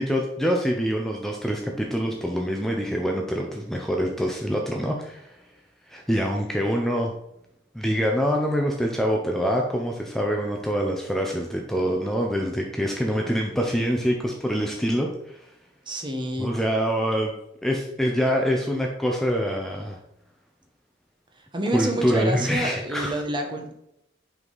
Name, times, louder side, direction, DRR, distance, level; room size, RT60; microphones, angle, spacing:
voice 1, 0.0-5.4 5.9-7.1 7.7-15.5 16.4-17.3 17.6-20.0 21.7-23.2, equal, ahead, 1 dB, 0.6 m, -25 dB
voice 2, 15.9-16.5 21.5-23.7, right 1 dB, 25° right, 3 dB, 1.0 m, -28 dB
5.7 x 5.4 x 4.0 m, 0.80 s
head